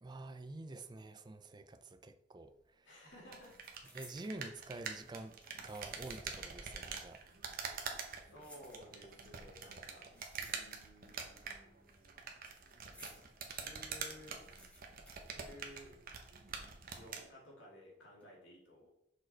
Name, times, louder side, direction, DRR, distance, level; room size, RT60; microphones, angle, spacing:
voice 1, 0.0-2.9 3.9-7.2, right 2 dB, 20° right, 0.4 m, -48 dB
sound 1, 2.4-2.7 3.0-4.4 5.2-6.6 6.9-7.0 7.8-9.2 9.9-11.1 11.3-13.3 13.7-13.8 14.0-16.1 16.4-16.5 17.2-17.6 18.0-18.2, equal, 5° left, 1.6 m, -61 dB
voice 2, 2.8-3.5 7.7-10.1 10.4-12.3 13.4-14.4 15.3-15.9 17.0-18.9, left 1 dB, 75° left, 2.8 m, -56 dB
sound 2, 3.3-17.3, right 5 dB, 50° right, 1.1 m, -46 dB
6.3 x 5.1 x 4.4 m
head